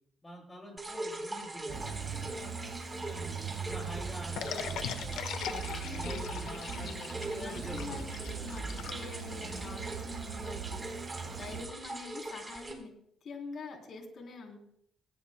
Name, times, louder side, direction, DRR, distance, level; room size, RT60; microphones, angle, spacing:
voice 1, 0.2-5.3 5.6-8.0 11.2-11.4, equal, 15° left, 0 dB, 7.3 m, -47 dB
sound 1, 0.8-12.7, right 2 dB, 20° right, 4.0 m, -42 dB
sound 2, 1.7-11.7, right 6 dB, 70° right, 1.6 m, -40 dB
sound 3, 4.4-9.7, left 9 dB, 85° left, 0.9 m, -40 dB
voice 2, 5.8-10.9 11.3-12.9 13.2-14.6, left 3 dB, 60° left, 2 dB, 3.4 m, -45 dB
19.5 x 17.5 x 2.2 m, 0.69 s
cardioid pair, 90°, 0 cm